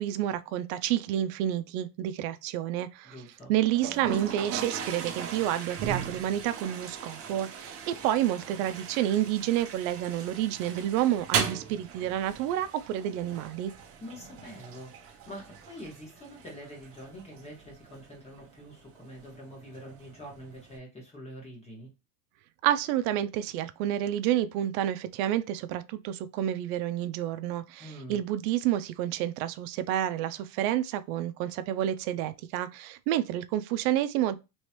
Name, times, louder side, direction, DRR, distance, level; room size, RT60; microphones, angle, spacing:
voice 1, 0.0-3.1 3.5-13.7 22.6-34.4, right 12 dB, 75° right, 0.5 m, -29 dB
voice 2, 3.0-3.5 14.0-21.9 27.8-28.2, equal, 15° left, 1.5 m, -45 dB
Toilet flush, 3.7-20.8, right 7 dB, 35° right, 0.6 m, -39 dB
3.2 x 3.0 x 2.9 m
cardioid pair, 155°, 43 cm